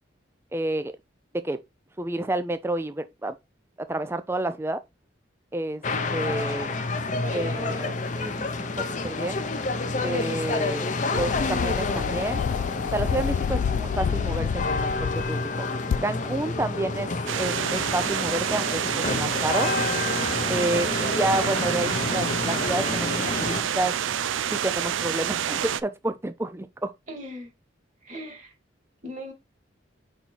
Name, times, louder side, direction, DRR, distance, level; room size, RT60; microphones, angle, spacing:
voice 1, 0.5-0.9 1.3-1.6 2.0-3.4 3.9-4.8 5.5-5.8 6.1-6.7 7.3-9.4 10.0-12.4 12.9-15.7 16.0-19.7 20.5-23.9 24.6-26.9, right 1 dB, 10° right, 0.4 m, -30 dB
sound 1, 5.8-23.6, left 3 dB, 40° left, 0.7 m, -29 dB
voice 2, 7.1-8.0 27.1-27.5 28.0-28.5 29.0-29.3, equal, 40° right, 2.4 m, -38 dB
sound 2, 11.2-15.3 15.9-16.0, left 7 dB, 80° left, 0.3 m, -28 dB
sound 3, 17.3-25.8, right 9 dB, 85° right, 0.4 m, -28 dB
5.2 x 4.2 x 4.5 m
head